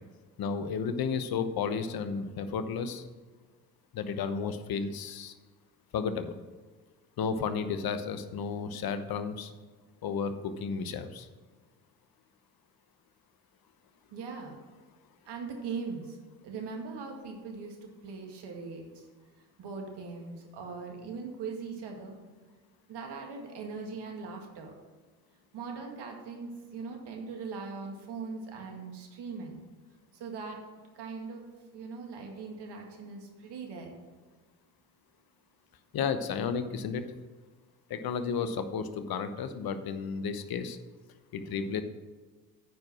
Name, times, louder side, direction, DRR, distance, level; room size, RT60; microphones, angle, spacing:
voice 1, 0.4-3.0 3.9-5.3 5.9-6.3 7.2-9.5 10.0-11.3 35.9-37.0 37.9-40.8 41.3-41.8, left 6 dB, 55° left, 10 dB, 1.0 m, -32 dB
voice 2, 14.1-14.6 15.3-16.2 16.4-18.9 19.6-22.2 22.9-24.7 25.5-29.6 30.2-30.6 31.0-31.4 31.7-33.9, right 4 dB, 70° right, 2 dB, 2.0 m, -40 dB
9.4 x 4.8 x 6.1 m, 1.3 s
supercardioid pair, 60°, 42 cm